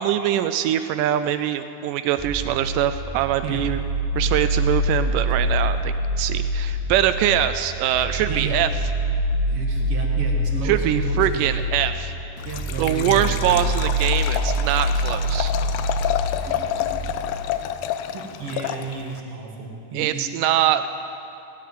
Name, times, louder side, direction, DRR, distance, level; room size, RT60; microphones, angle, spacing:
voice 1, 0.0-3.8 4.2-8.7 10.6-12.1 12.8-15.5 19.9-20.9, right 11 dB, 80° right, 11 dB, 2.0 m, -23 dB
sound 1, 2.2-17.2, right 1 dB, 20° left, 0.5 m, -25 dB
voice 2, 8.2-8.6 9.5-11.5 12.4-13.6 16.4-16.9 18.1-20.3, right 4 dB, 50° right, 0 dB, 2.1 m, -32 dB
Liquid, 12.4-19.2, left 11 dB, 80° left, 1.9 m, -29 dB
17.5 x 8.2 x 9.5 m, 2.7 s
omnidirectional pair, 4.0 m